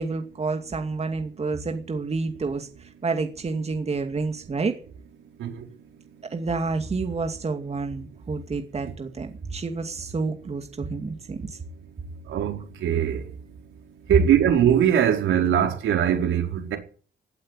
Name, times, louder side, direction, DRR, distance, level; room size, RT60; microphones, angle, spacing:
voice 1, 0.0-4.7 6.3-11.6, right 4 dB, 30° right, 2.3 m, -29 dB
voice 2, 12.3-13.2 14.1-16.8, right 9 dB, 80° right, 4.8 m, -21 dB
16.5 x 8.5 x 9.9 m
cardioid pair, 90°, 20 cm